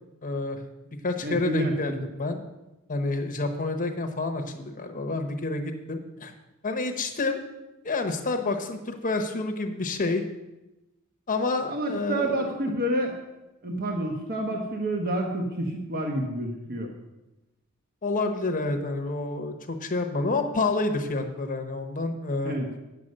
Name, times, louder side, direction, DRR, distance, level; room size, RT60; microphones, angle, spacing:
voice 1, 0.2-0.6 1.0-2.4 2.9-6.3 6.6-7.4 7.8-10.2 11.3-12.5 18.0-22.6, left 3 dB, 40° left, 6 dB, 0.9 m, -28 dB
voice 2, 1.2-2.0 11.7-13.1 13.6-16.9 22.4-22.7, right 1 dB, 45° right, 1 dB, 1.3 m, -29 dB
9.4 x 7.4 x 6.5 m, 1.0 s
head